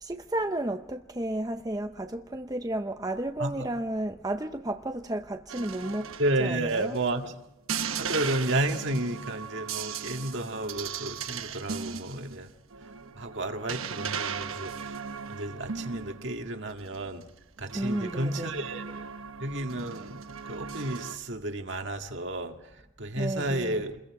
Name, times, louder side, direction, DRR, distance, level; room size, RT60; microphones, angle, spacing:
voice 1, 0.0-6.1 6.4-6.9 17.7-18.5 23.2-23.8, right 1 dB, 20° right, 0.7 m, -32 dB
sound 1, 5.5-7.2 7.7-16.5 16.8-17.2 17.7-21.2, right 6 dB, 85° right, 1.1 m, -37 dB
voice 2, 6.2-7.3 8.0-12.5 13.1-15.0 15.3-17.2 17.6-19.0 19.4-24.0, right 1 dB, 60° right, 1.9 m, -32 dB
28.5 x 22.0 x 4.9 m
head